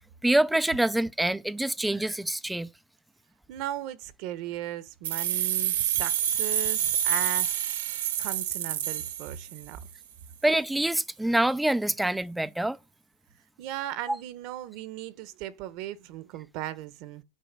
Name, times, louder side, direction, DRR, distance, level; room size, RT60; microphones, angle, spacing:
voice 1, 0.2-2.7 10.4-12.8, right 1 dB, 5° right, 0.5 m, -25 dB
voice 2, 3.5-7.6 8.2-9.8 13.6-17.2, right 13 dB, 45° right, 1.0 m, -37 dB
sound 1, 5.0-9.8, right 10 dB, 75° right, 1.9 m, -28 dB
10.0 x 4.7 x 7.4 m
supercardioid pair, 155°, 0 cm